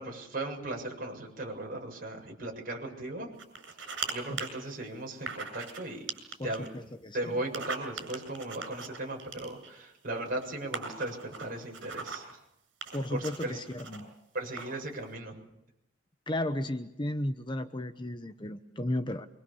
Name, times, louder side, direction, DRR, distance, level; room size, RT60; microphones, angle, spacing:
voice 1, 0.0-3.3 3.8-6.1 6.4-6.9 7.1-12.4 13.1-13.6 14.3-15.4, right 2 dB, 45° right, 1 dB, 7.2 m, -37 dB
sound 1, 3.4-4.1 4.4-4.5 5.3-5.8 6.1-6.7 7.4-9.8 10.4-10.5 10.7-12.3 12.8-14.0 14.5-14.8, right 5 dB, 65° right, 7.2 m, -39 dB
voice 2, 6.4-7.3 12.9-14.1 16.3-19.3, left 1 dB, 25° left, 9 dB, 0.9 m, -34 dB
25.0 x 25.0 x 7.2 m, 0.84 s
head